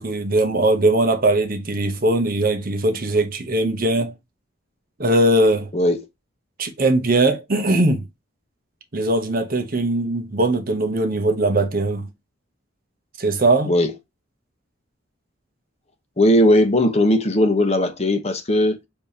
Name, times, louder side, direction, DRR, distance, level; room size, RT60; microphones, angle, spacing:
voice 1, 0.0-4.1 5.0-5.7 6.6-8.0 8.9-12.1 13.2-13.7, right 2 dB, 45° right, 0.8 m, -20 dB
voice 2, 5.7-6.0 13.7-13.9 16.2-18.8, left 1 dB, 30° left, 0.8 m, -18 dB
6.8 x 2.8 x 2.7 m
head